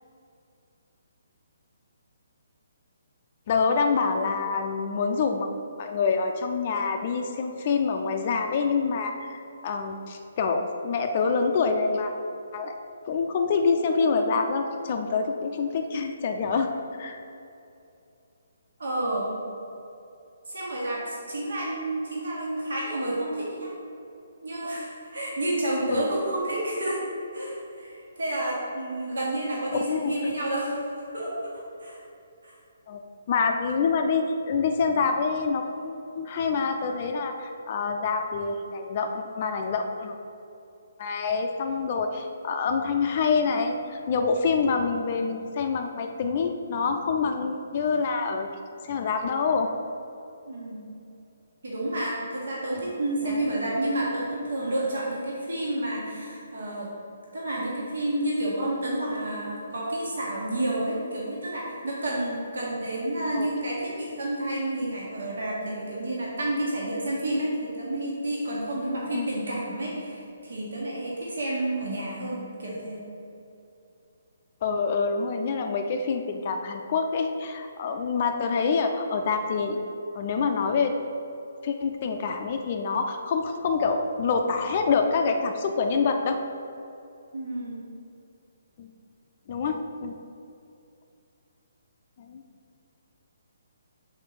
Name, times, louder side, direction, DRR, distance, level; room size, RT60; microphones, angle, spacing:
voice 1, 3.5-5.5 5.8-12.1 12.5-12.7 13.1-16.7 17.0-17.2 25.9-26.1 29.7-30.1 32.9-33.0 33.3-40.1 41.0-48.5 48.9-49.7 53.3-53.4 63.3-63.5 69.1-69.3 74.6-79.8 80.1-80.9 81.6-86.4 88.8-88.9 89.5-90.2 92.3-92.4, left 5 dB, 45° left, 4 dB, 0.5 m, -26 dB
voice 2, 18.8-19.3 20.5-23.7 24.4-27.0 27.3-30.9 31.1-32.0 32.4-32.5 50.5-50.8 51.6-56.9 57.3-73.0 87.3-87.8, right 1 dB, 70° right, -5 dB, 1.5 m, -30 dB
5.9 x 4.5 x 4.7 m, 2.6 s
figure-of-eight pair, 135°, 0 cm